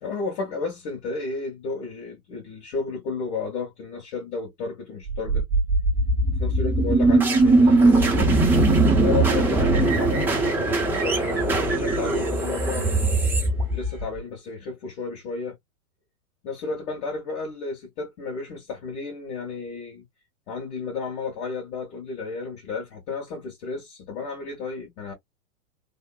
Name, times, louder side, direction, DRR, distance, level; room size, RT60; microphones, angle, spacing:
voice 1, 0.0-5.5 6.4-13.1 13.7-15.6 16.4-20.1 20.5-25.1, left 4 dB, 50° left, 1.8 m, -32 dB
sound 1, 5.1-14.2, right 2 dB, 5° right, 0.6 m, -20 dB
3.4 x 2.0 x 2.2 m
hypercardioid pair, 120°, 43 cm